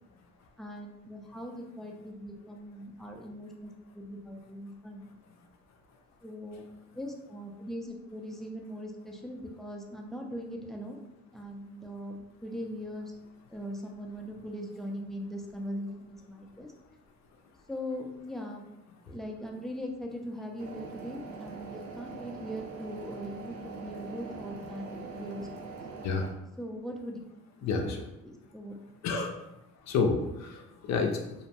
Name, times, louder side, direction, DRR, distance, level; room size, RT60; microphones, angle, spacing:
voice 1, 0.6-5.1 6.2-6.6 6.9-11.0 11.3-13.2 13.5-16.7 17.7-18.6 19.1-25.8 26.6-27.2 27.8-28.0 28.2-28.8, equal, ahead, 1 dB, 0.4 m, -40 dB
sound 1, 20.6-26.3, right 4 dB, 70° right, 0.6 m, -43 dB
voice 2, 27.6-28.0 29.0-29.3 29.9-31.5, left 4 dB, 65° left, 3 dB, 0.5 m, -29 dB
2.6 x 2.1 x 2.8 m, 0.90 s
cardioid pair, 90°, 30 cm